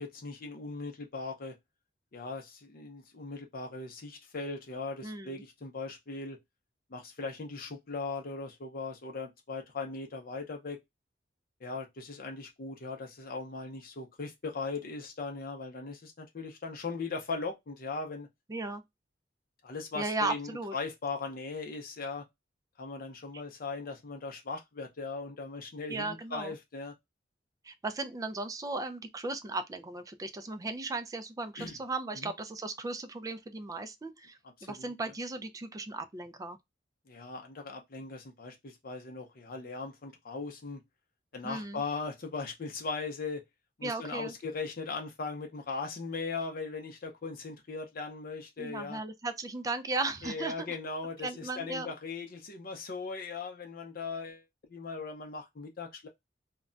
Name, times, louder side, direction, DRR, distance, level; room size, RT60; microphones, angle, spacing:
voice 1, 0.0-1.6 2.1-6.4 6.9-10.8 11.6-18.3 19.6-22.3 22.8-26.9 31.5-31.8 32.1-32.3 34.6-34.9 37.1-40.8 41.3-43.4 43.8-49.0 50.2-54.4 54.7-56.1, left 4 dB, 55° left, 0.6 m, -39 dB
voice 2, 5.0-5.4 18.5-18.8 20.0-20.7 25.9-26.5 27.6-36.6 41.4-41.8 43.8-44.3 48.6-50.8 51.2-51.9, right 2 dB, 20° right, 0.3 m, -36 dB
2.2 x 2.1 x 3.7 m
head